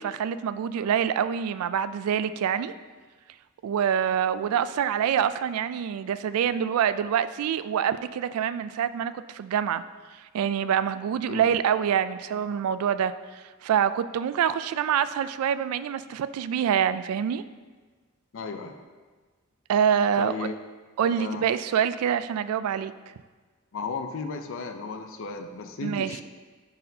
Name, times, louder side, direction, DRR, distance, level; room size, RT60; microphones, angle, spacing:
voice 1, 0.0-2.7 3.6-9.8 10.3-13.1 13.6-17.4 19.7-20.5 21.0-22.9 25.8-26.2, right 8 dB, 80° right, 15 dB, 0.3 m, -26 dB
voice 2, 18.3-18.8 20.2-20.5 21.0-21.4 23.7-26.2, left 4 dB, 65° left, 6 dB, 0.5 m, -34 dB
10.5 x 4.2 x 2.7 m, 1.4 s
head